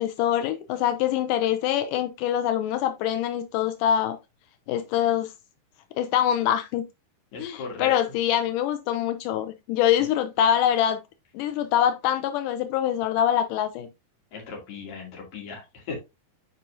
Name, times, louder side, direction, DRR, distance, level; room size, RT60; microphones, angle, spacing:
voice 1, 0.0-4.2 4.7-5.3 6.0-6.8 7.4-11.0 11.3-13.9, left 10 dB, 90° left, 1.8 m, -24 dB
voice 2, 7.3-7.9 14.3-16.0, left 4 dB, 50° left, 3.7 m, -37 dB
9.9 x 4.7 x 2.6 m
omnidirectional pair, 4.5 m